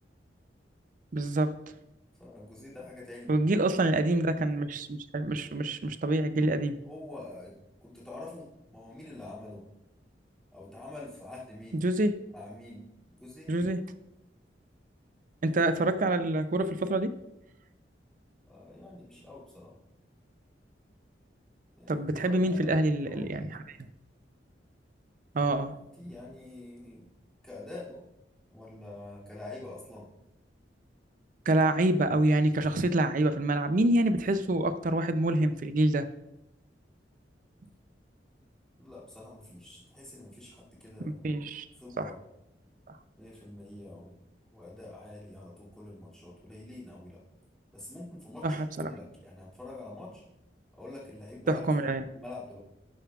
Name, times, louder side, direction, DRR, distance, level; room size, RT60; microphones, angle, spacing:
voice 1, 1.1-1.6 3.3-6.8 11.8-12.1 13.5-13.8 15.4-17.1 21.9-23.8 25.3-25.8 31.5-36.1 41.0-41.7 42.0-42.1 48.4-48.7 51.5-52.0, right 2 dB, 45° right, 11 dB, 0.5 m, -26 dB
voice 2, 2.2-3.7 6.8-9.7 10.5-11.9 12.3-12.9 13.2-13.6 18.5-19.7 21.8-23.3 26.0-27.1 27.4-28.0 28.5-30.1 38.8-41.2 41.8-42.3 43.1-44.2 44.5-47.2 47.7-50.2 50.7-52.6, left 2 dB, 5° left, -9 dB, 2.5 m, -46 dB
11.5 x 6.8 x 2.4 m, 0.89 s
head